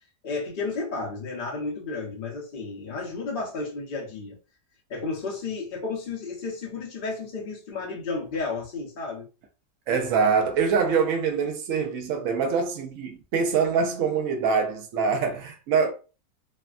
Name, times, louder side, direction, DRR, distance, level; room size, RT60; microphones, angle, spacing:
voice 1, 0.2-4.4 4.9-9.3, left 3 dB, 40° left, 0.7 m, -32 dB
voice 2, 9.9-15.9, right 5 dB, 80° right, 0.7 m, -24 dB
3.3 x 2.1 x 2.3 m
omnidirectional pair, 1.9 m